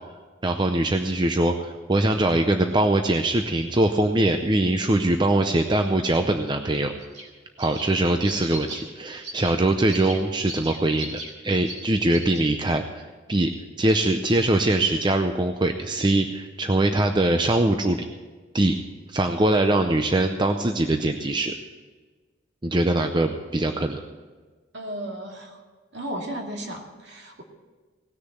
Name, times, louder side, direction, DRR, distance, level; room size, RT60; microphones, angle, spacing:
voice 1, 0.4-6.9 7.6-13.5 13.8-18.1 18.5-18.8 19.1-21.5 22.6-24.0, right 2 dB, 25° right, 5 dB, 0.6 m, -22 dB
sound 1, 7.0-7.3 7.6-7.9 8.2-8.8 9.2-9.5 9.9-10.2 10.5-11.3 11.7-11.8 12.1-12.4, right 1 dB, 90° right, 4.0 m, -37 dB
voice 2, 24.7-25.6 25.9-27.4, right 1 dB, 60° right, 1 dB, 2.2 m, -34 dB
18.0 x 6.7 x 7.9 m, 1.4 s
head